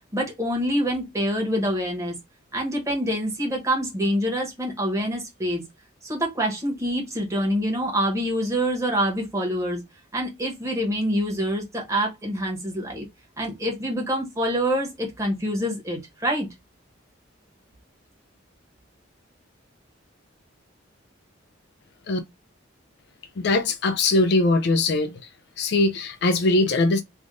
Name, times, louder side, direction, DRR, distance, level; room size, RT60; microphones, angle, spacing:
voice 1, 0.1-2.1 2.5-5.6 6.0-9.8 10.1-13.0 13.4-16.5, equal, 15° right, 1.2 m, -26 dB
voice 2, 23.4-25.2 25.6-27.0, left 2 dB, 55° left, 0.4 m, -21 dB
3.4 x 2.4 x 3.7 m
head